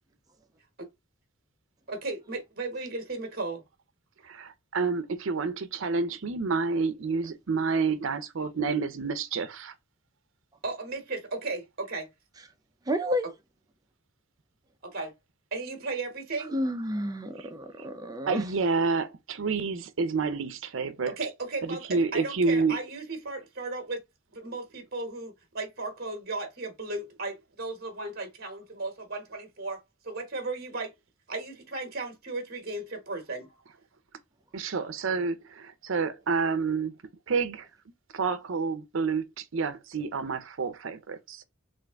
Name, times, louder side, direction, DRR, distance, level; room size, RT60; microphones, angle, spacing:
voice 1, 1.9-3.6 10.6-12.1 14.8-15.1 15.5-16.6 21.1-24.0 24.3-29.8 30.0-30.9 31.3-33.5, right 3 dB, 45° right, 1.0 m, -35 dB
voice 2, 4.2-9.7 17.4-17.5 18.3-21.2 21.6-22.8 34.5-36.9 37.3-37.7 38.1-41.4, right 4 dB, 70° right, 0.6 m, -29 dB
voice 3, 12.9-13.3 16.5-18.4, equal, 20° right, 0.4 m, -30 dB
3.6 x 2.5 x 3.4 m
head